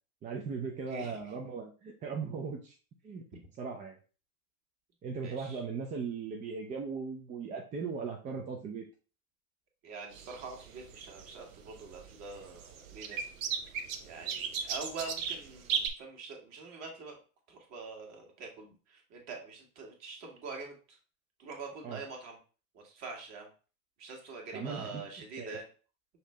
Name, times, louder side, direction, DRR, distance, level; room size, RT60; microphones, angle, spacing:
voice 1, 0.2-2.7 3.0-3.3 3.6-4.0 5.0-8.8 21.8-22.0 24.5-25.1 25.4-25.6, right 5 dB, 20° right, 0 dB, 0.5 m, -38 dB
voice 2, 0.9-1.2 5.2-5.6 9.8-13.3 14.0-17.2 17.5-20.8 21.4-22.4 22.8-23.5 24.0-25.7, right 4 dB, 35° right, 1 dB, 1.6 m, -44 dB
sound 1, 10.1-15.9, right 7 dB, 65° right, 0.9 m, -37 dB
5.6 x 2.7 x 3.3 m, 0.36 s
hypercardioid pair, 110°, 44 cm